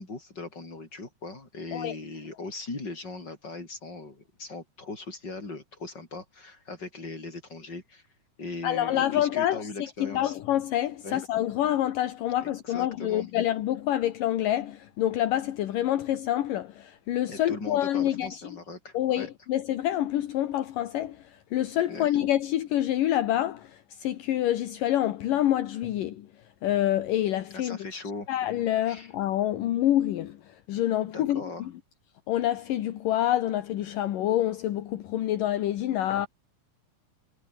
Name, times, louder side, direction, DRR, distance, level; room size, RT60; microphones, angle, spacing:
voice 1, 0.0-8.0 8.4-10.4 11.0-11.2 12.4-13.3 17.3-19.3 21.9-22.2 27.5-28.3 28.8-29.1 31.1-31.7, left 3 dB, 30° left, 6.4 m, -39 dB
voice 2, 8.6-9.7 10.0-18.3 18.9-26.3 26.6-27.8 28.3-31.7 32.3-36.3, left 12 dB, 70° left, 2.9 m, -27 dB
omnidirectional pair, 4.1 m